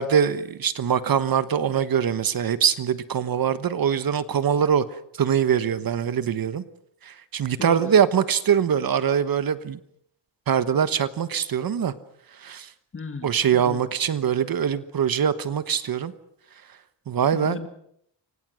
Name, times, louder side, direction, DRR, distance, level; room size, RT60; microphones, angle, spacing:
voice 1, 0.0-4.8 5.2-6.6 7.0-9.8 10.5-11.9 12.4-12.7 13.2-16.1 17.1-17.6, right 8 dB, 55° right, 13 dB, 1.3 m, -23 dB
voice 2, 7.6-7.9 12.9-13.8 17.3-17.7, left 4 dB, 30° left, 8 dB, 2.6 m, -35 dB
29.0 x 25.0 x 6.4 m, 0.71 s
wide cardioid pair, 155°, 43 cm